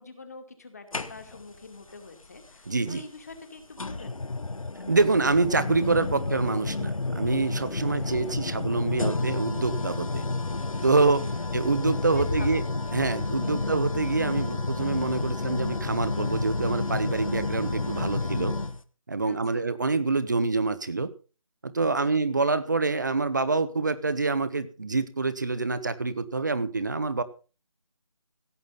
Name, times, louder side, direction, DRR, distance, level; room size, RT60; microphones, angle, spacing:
voice 1, 0.0-4.3 7.8-8.6 11.0-11.5 12.0-12.7 18.2-18.5 19.2-19.7 21.8-22.2, left 3 dB, 30° left, 6 dB, 2.4 m, -46 dB
sound 1, 0.9-1.6 2.9-3.0 3.8-18.8, left 3 dB, 75° left, 1.6 m, -30 dB
voice 2, 2.7-3.0 4.9-10.3 10.8-11.2 11.5-12.6 12.9-18.5 19.1-21.1 21.6-27.2, right 3 dB, 35° right, 13 dB, 1.2 m, -26 dB
16.5 x 8.9 x 5.5 m, 0.35 s
figure-of-eight pair, 175°, 17 cm